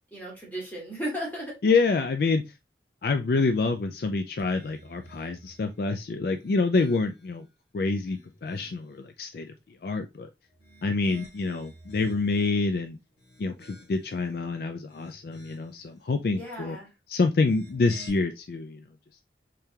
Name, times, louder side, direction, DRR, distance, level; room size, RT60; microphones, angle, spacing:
voice 1, 0.1-1.5 16.3-16.9, equal, 10° left, -5 dB, 1.8 m, -35 dB
voice 2, 1.6-2.4 3.0-7.4 7.7-9.5 9.8-10.3 10.8-13.0 13.4-16.8 17.1-18.8, left 3 dB, 55° left, 7 dB, 0.4 m, -27 dB
sound 1, 4.4-5.7 6.2-7.4 7.9-9.0 10.5-12.6 13.1-14.2 14.7-15.8 17.3-18.1, right 1 dB, 80° left, 1.6 m, -52 dB
3.6 x 3.3 x 2.8 m, 0.24 s
head